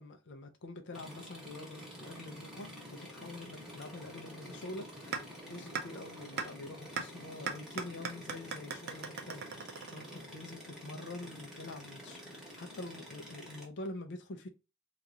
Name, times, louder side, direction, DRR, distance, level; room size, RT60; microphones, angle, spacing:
voice 1, 0.0-9.4 9.9-14.5, left 2 dB, 55° left, 0.5 m, -46 dB
sound 1, 0.9-13.7, equal, ahead, 1.1 m, -49 dB
sound 2, 5.1-5.2 5.7-5.8 6.4-6.5 7.0-7.1 7.5-10.4, right 5 dB, 50° right, 0.5 m, -37 dB
2.9 x 2.4 x 3.7 m
head